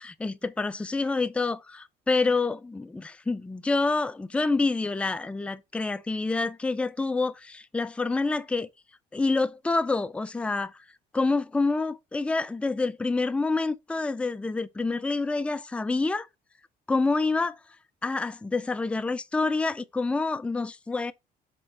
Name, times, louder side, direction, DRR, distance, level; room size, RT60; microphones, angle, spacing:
voice 1, 0.0-8.7 9.1-10.8 11.1-16.3 16.9-17.6 18.0-21.1, left 3 dB, 5° left, 0.4 m, -27 dB
6.7 x 3.5 x 4.1 m
cardioid pair, 110°, 17 cm